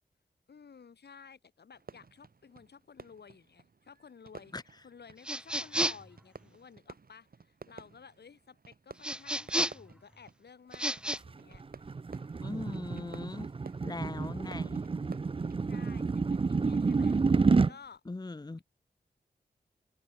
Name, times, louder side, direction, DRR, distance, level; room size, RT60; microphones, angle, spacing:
voice 1, 0.5-4.5 4.8-11.6 13.8-14.7 15.6-17.2 17.7-18.0, left 6 dB, 75° left, 3.4 m, -54 dB
Fireworks, 1.7-16.0, right 4 dB, 60° right, 3.3 m, -54 dB
sound 1, 5.2-6.1 9.0-9.9 10.7-11.2, right 1 dB, 5° right, 1.0 m, -32 dB
sound 2, 11.3-17.7, right 4 dB, 30° right, 0.6 m, -29 dB
voice 2, 12.4-13.5 13.8-14.8 18.1-18.6, left 3 dB, 25° left, 0.9 m, -40 dB
cardioid pair, 45°, 17 cm